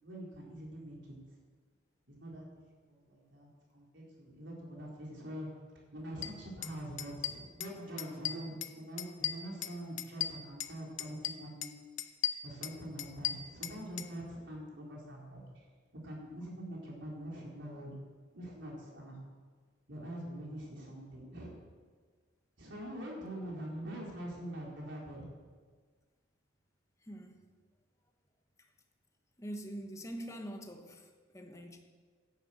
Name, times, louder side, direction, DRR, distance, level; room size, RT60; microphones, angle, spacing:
voice 1, 0.0-1.2 2.1-2.4 2.9-5.5 5.9-11.8 12.4-15.7 16.0-17.9 18.3-19.2 19.9-21.5 22.6-25.3, right 1 dB, 70° right, 4.0 m, -44 dB
sound 1, 6.2-6.3 6.6-6.7 7.0-7.7 8.0-8.7 9.0-10.7 11.0-11.7 12.0-14.1, left 11 dB, 75° left, 0.8 m, -36 dB
voice 2, 27.0-27.4 28.6-28.7 29.4-31.8, equal, 15° left, 1.2 m, -44 dB
11.0 x 10.5 x 7.8 m
head